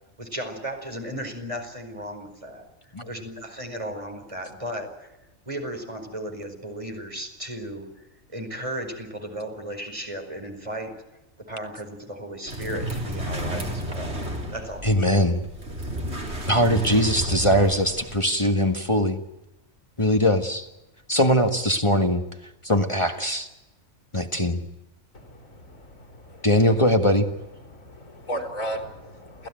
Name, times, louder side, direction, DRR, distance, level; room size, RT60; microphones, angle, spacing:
voice 1, 0.2-2.6 3.0-5.2 5.5-11.0 11.5-14.2 14.5-14.9, equal, 25° right, 4 dB, 4.9 m, -35 dB
sound 1, 12.5-18.2, right 1 dB, 55° right, 4.2 m, -32 dB
voice 2, 14.8-15.4 16.5-19.2 20.0-20.7 21.1-22.2 22.6-23.5 24.1-24.6 26.4-27.3, left 1 dB, 25° left, 5 dB, 1.7 m, -21 dB
voice 3, 25.1-26.5 27.6-29.5, right 1 dB, 90° left, 2 dB, 4.6 m, -36 dB
29.5 x 15.5 x 9.1 m, 0.97 s
omnidirectional pair, 1.4 m